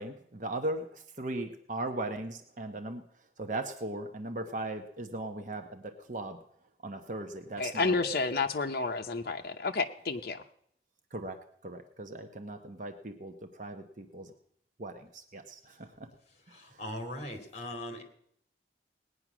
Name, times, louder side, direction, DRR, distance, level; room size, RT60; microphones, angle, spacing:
voice 1, 0.0-3.0 3.4-6.4 6.8-8.1 11.1-11.4 11.6-14.3 14.8-16.1, right 2 dB, 45° right, 6 dB, 0.9 m, -38 dB
voice 2, 7.6-10.4, left 3 dB, 55° left, 3 dB, 0.8 m, -30 dB
voice 3, 16.5-18.0, left 1 dB, 40° left, 5 dB, 2.6 m, -39 dB
18.5 x 9.7 x 6.1 m, 0.69 s
head